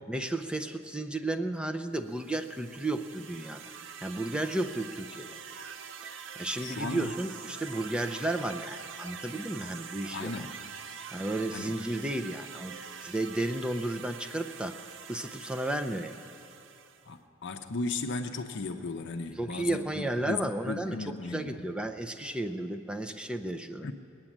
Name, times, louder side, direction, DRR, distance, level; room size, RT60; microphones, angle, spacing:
voice 1, 0.1-3.7 4.0-5.4 6.0-10.3 11.1-12.8 13.0-14.8 15.1-16.2 19.4-23.9, right 1 dB, 5° right, 7 dB, 0.5 m, -33 dB
sound 1, 2.1-17.1, right 7 dB, 60° right, 0.6 m, -45 dB
voice 2, 6.6-7.2 10.1-10.5 11.5-11.7 17.1-21.7 23.8-23.9, left 3 dB, 55° left, 5 dB, 0.6 m, -36 dB
21.0 x 8.9 x 7.3 m, 2.7 s
head